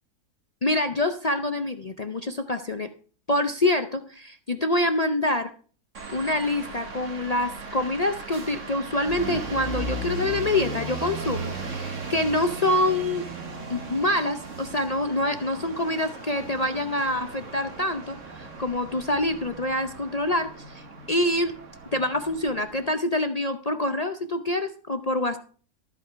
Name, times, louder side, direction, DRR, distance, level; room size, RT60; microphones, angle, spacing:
voice 1, 0.6-2.9 3.3-5.5 6.1-13.3 13.7-21.5 21.9-25.4, left 1 dB, 55° left, 7 dB, 0.4 m, -26 dB
sound 1, 5.9-22.9, right 3 dB, 50° right, 1.8 m, -37 dB
13.0 x 8.2 x 4.6 m, 0.41 s
omnidirectional pair, 1.7 m